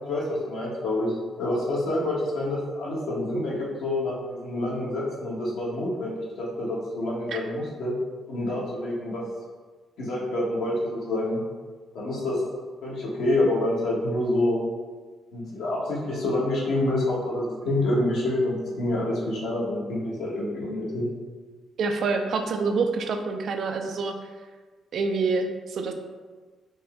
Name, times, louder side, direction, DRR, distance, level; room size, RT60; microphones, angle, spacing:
voice 1, 0.1-8.0 8.3-9.2 10.0-11.4 11.9-12.4 12.8-14.6 15.3-21.0, left 1 dB, 75° left, -5 dB, 1.2 m, -27 dB
voice 2, 21.8-24.2 24.9-25.9, right 4 dB, 65° right, 5 dB, 0.4 m, -26 dB
4.1 x 2.2 x 3.5 m, 1.4 s
cardioid pair, 90°, 0 cm